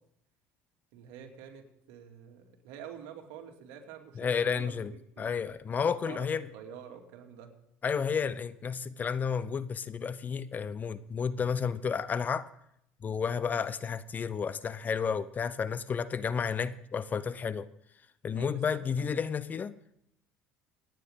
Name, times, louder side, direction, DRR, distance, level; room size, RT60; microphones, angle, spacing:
voice 1, 0.9-5.4 5.8-7.5 18.3-19.1, right 8 dB, 85° right, 2 dB, 2.4 m, -48 dB
voice 2, 4.2-4.9 5.2-6.5 7.8-12.5 13.0-17.7 18.2-19.7, left 6 dB, 30° left, 16 dB, 0.7 m, -31 dB
27.0 x 9.2 x 3.7 m, 0.75 s
supercardioid pair, 110°, 5 cm